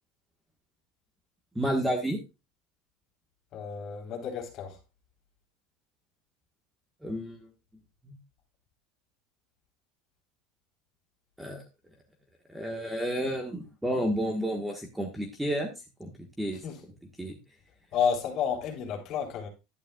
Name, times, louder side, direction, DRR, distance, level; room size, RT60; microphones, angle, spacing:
voice 1, 1.5-2.2 7.0-7.5 8.0-8.2 11.4-11.6 12.5-15.7 16.0-16.6 17.2-17.4, equal, 5° right, 1.3 m, -31 dB
voice 2, 3.5-4.8 16.6-16.8 17.9-19.5, left 7 dB, 40° left, 3.5 m, -31 dB
11.5 x 10.5 x 2.3 m
cardioid pair, 165°, 0 cm